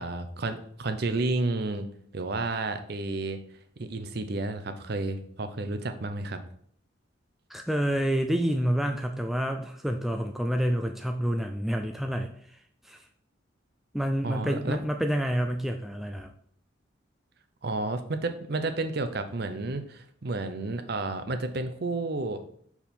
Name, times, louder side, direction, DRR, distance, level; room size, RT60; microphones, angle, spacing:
voice 1, 0.0-1.9 2.1-3.4 3.8-6.4 14.2-14.8 17.6-22.4, right 2 dB, 50° right, 9 dB, 0.6 m, -31 dB
voice 2, 7.5-12.3 12.8-13.0 13.9-16.3, equal, ahead, 5 dB, 0.3 m, -28 dB
5.3 x 4.6 x 4.3 m, 0.62 s
head